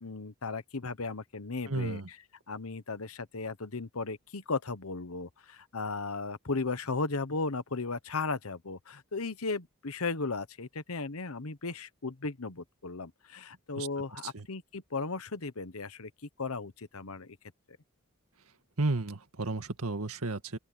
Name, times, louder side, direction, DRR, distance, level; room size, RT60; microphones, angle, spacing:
voice 1, 0.0-2.0 2.5-16.1 16.4-17.4, left 3 dB, 80° left, 1.2 m, -36 dB
voice 2, 1.7-2.1 13.8-13.9 14.2-14.5 18.8-20.6, right 2 dB, 85° right, 1.9 m, -33 dB
open air
head